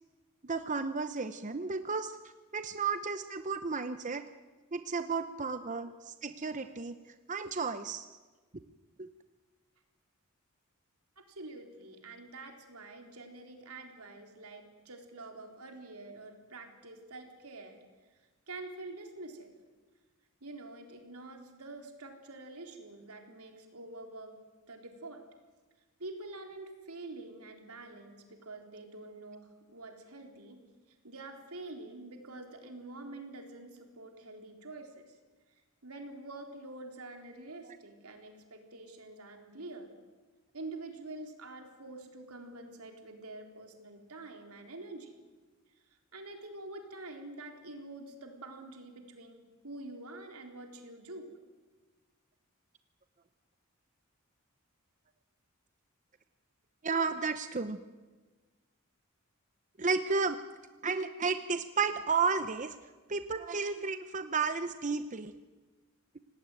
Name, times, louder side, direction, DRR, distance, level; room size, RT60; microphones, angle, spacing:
voice 1, 0.4-2.2 2.5-4.2 4.7-7.0 7.3-8.1 56.8-57.8 59.8-60.4 60.8-62.8 63.1-65.3, right 4 dB, 35° right, 10 dB, 0.8 m, -32 dB
voice 2, 11.2-17.8 18.5-19.5 20.4-24.4 24.7-25.2 26.0-30.6 31.0-35.2 35.8-39.9 40.5-45.1 46.1-51.3, right 2 dB, 85° right, 3 dB, 4.0 m, -46 dB
27.0 x 18.5 x 9.2 m, 1.3 s
head